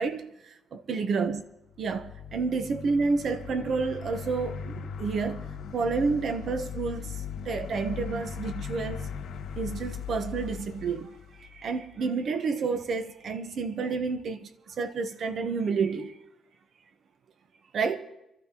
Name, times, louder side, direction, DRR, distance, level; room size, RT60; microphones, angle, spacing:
voice 1, 0.0-1.4 1.8-7.1 7.4-9.1 9.6-16.2 17.7-18.0, right 4 dB, 55° right, 1.1 m, -30 dB
sound 1, 1.7-11.9, left 7 dB, 85° left, 1.9 m, -39 dB
25.0 x 14.5 x 3.0 m
cardioid pair, 120°, 0 cm